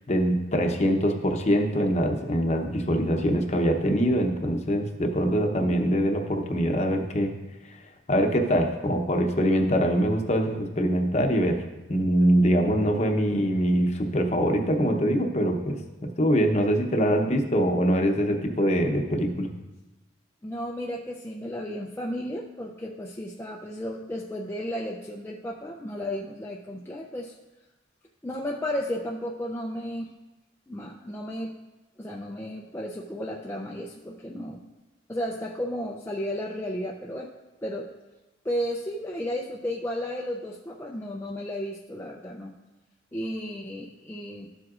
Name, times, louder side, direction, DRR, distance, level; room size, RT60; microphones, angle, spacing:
voice 1, 0.1-7.3 8.1-11.6 11.9-19.5, equal, 35° left, 3 dB, 0.8 m, -23 dB
voice 2, 20.4-27.3 28.2-30.1 30.7-31.5 32.0-34.6 35.1-37.3 37.6-37.9 38.4-42.5 43.1-44.6, equal, 10° left, -2 dB, 0.4 m, -33 dB
12.5 x 7.7 x 2.5 m, 1.1 s
head